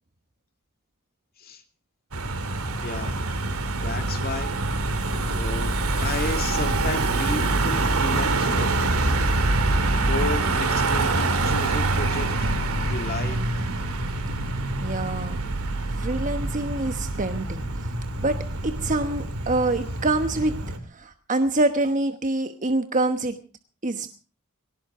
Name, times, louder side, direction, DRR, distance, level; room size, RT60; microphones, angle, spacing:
Car passing by / Engine, 2.1-20.8, right 2 dB, 75° right, 2.3 m, -25 dB
voice 1, 2.7-3.2 3.8-4.5 5.0-5.7 6.0-8.7 10.0-12.5 12.8-13.6, left 3 dB, 45° left, 6 dB, 2.6 m, -33 dB
voice 2, 14.8-15.4 16.0-17.6 18.2-18.4 18.6-20.5 20.9-23.4 23.8-24.1, right 2 dB, 35° right, 8 dB, 1.1 m, -25 dB
20.0 x 18.0 x 3.7 m, 0.35 s
head